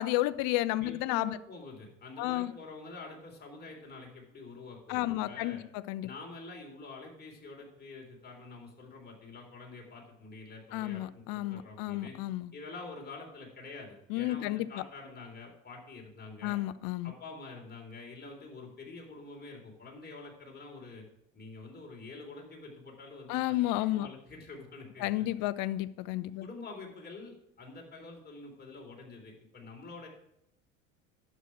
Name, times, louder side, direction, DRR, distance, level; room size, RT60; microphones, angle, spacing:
voice 1, 0.0-1.4 2.2-2.5 4.9-5.6 5.9-6.1 10.7-12.5 14.1-14.7 16.4-17.1 23.3-24.1 25.0-26.5, left 16 dB, 55° left, 0.7 m, -31 dB
voice 2, 0.8-5.6 6.0-12.2 12.5-16.6 17.0-21.0 21.3-25.3 26.4-30.1, left 3 dB, 25° left, 3.9 m, -47 dB
11.0 x 7.4 x 4.8 m
hypercardioid pair, 80°, 40 cm